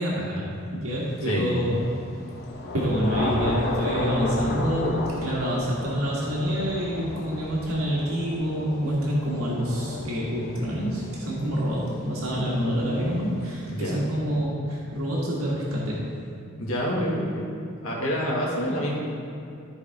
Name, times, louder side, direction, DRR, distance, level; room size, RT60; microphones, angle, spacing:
voice 1, 0.0-1.9 2.7-16.2 18.6-18.7, equal, 85° right, -5 dB, 1.6 m, -27 dB
voice 2, 1.3-1.7 13.7-14.0 16.6-17.5 17.8-18.9, equal, 75° left, -3 dB, 1.9 m, -27 dB
Thunder / Rain, 1.5-13.1, left 1 dB, 50° left, 1.0 m, -33 dB
14.0 x 4.9 x 3.5 m, 2.6 s
head